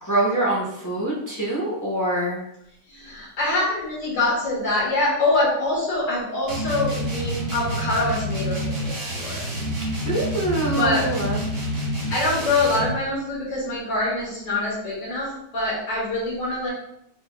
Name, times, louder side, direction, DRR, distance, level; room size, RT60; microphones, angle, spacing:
voice 1, 0.0-2.4 10.1-11.4, right 1 dB, 30° left, -6 dB, 0.3 m, -24 dB
voice 2, 2.9-9.4 10.7-11.1 12.1-16.7, left 2 dB, 90° left, -6 dB, 2.3 m, -24 dB
sound 1, 6.5-13.0, equal, 40° right, 1.0 m, -28 dB
4.4 x 3.6 x 2.2 m, 0.77 s
omnidirectional pair, 1.9 m